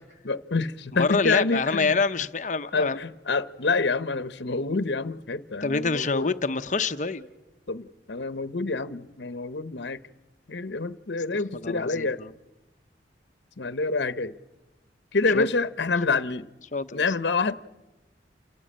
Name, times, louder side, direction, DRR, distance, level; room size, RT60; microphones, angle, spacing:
voice 1, 0.2-2.0 2.7-6.3 7.7-10.0 10.5-12.2 13.6-14.3 15.1-16.5 16.9-17.6, left 3 dB, 70° left, 13 dB, 0.9 m, -27 dB
voice 2, 1.0-3.0 5.6-7.3 11.6-12.1 15.3-15.5 16.7-17.0, left 4 dB, 40° left, 10 dB, 0.8 m, -26 dB
28.5 x 16.5 x 8.8 m, 1.1 s
head